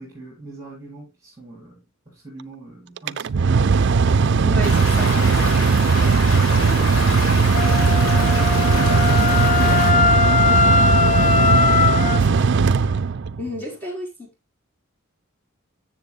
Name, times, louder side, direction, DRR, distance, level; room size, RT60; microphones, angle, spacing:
voice 1, 0.0-3.6, right 2 dB, 15° right, 6.6 m, -42 dB
Mechanical fan, 3.0-13.5, right 5 dB, 55° right, 0.4 m, -18 dB
voice 2, 4.1-5.1 13.4-14.3, equal, 10° left, 4.6 m, -31 dB
Stream, 4.6-9.9, left 1 dB, 70° left, 5.6 m, -28 dB
Wind instrument woodwind instrument, 7.5-12.2, left 6 dB, 35° left, 0.5 m, -20 dB
14.0 x 7.4 x 2.4 m
head